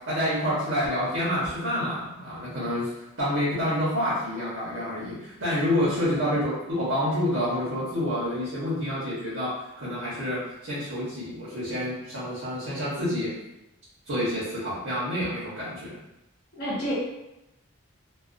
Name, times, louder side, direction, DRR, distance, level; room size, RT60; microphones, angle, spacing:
voice 1, 0.1-2.9 3.2-13.3 14.1-16.0, equal, 70° right, -9 dB, 0.9 m, -28 dB
voice 2, 5.8-6.1 16.5-16.9, equal, 45° left, -6 dB, 0.7 m, -31 dB
2.4 x 2.3 x 2.5 m, 0.93 s
head